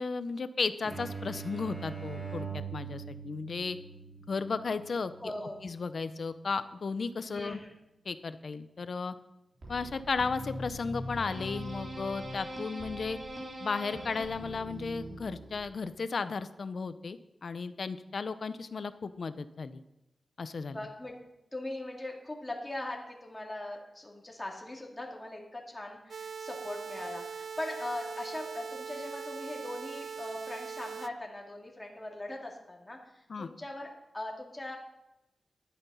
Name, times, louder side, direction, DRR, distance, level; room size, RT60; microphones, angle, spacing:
voice 1, 0.0-3.8 4.3-5.3 5.6-7.6 8.1-9.1 9.7-13.2 13.6-19.8 20.4-20.8 33.3-33.5, left 4 dB, 60° left, 12 dB, 0.7 m, -34 dB
sound 1, 0.8-6.3, right 6 dB, 30° right, 4.3 m, -43 dB
voice 2, 5.2-5.6 7.3-7.7 20.7-21.1 21.5-34.8, left 1 dB, 15° left, 0 dB, 2.5 m, -40 dB
sound 2, 9.6-15.9, equal, 50° right, 3.5 m, -41 dB
sound 3, 26.1-31.1, right 6 dB, 70° right, 0.4 m, -41 dB
11.5 x 9.5 x 5.6 m, 0.92 s
wide cardioid pair, 100°, 0 cm